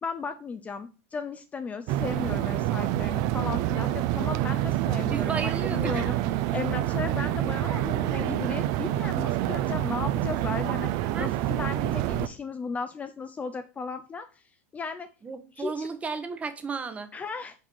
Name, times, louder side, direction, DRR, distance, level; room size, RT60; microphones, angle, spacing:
voice 1, 0.0-6.2 6.5-14.3 14.7-15.1 15.6-15.9 17.1-17.5, left 5 dB, 20° left, 0.4 m, -35 dB
sound 1, 1.9-12.3, right 14 dB, 55° right, 0.5 m, -27 dB
voice 2, 5.1-6.0 11.1-11.3 15.2-17.1, right 5 dB, 15° right, 0.9 m, -34 dB
5.3 x 4.2 x 5.3 m
supercardioid pair, 125°, 8 cm